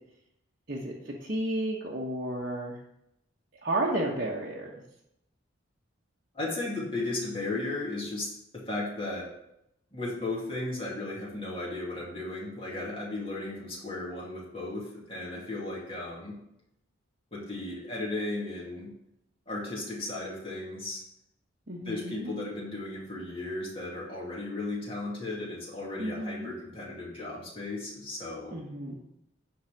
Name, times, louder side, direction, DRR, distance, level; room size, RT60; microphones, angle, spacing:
voice 1, 0.7-2.8 3.6-4.7 21.7-22.3 26.0-26.5 28.5-29.0, right 1 dB, 45° right, -4 dB, 1.1 m, -32 dB
voice 2, 6.3-9.3 9.9-16.3 17.3-18.9 19.5-21.0 21.8-28.6, left 2 dB, 30° left, -5 dB, 2.5 m, -35 dB
10.5 x 3.9 x 6.5 m, 0.82 s
head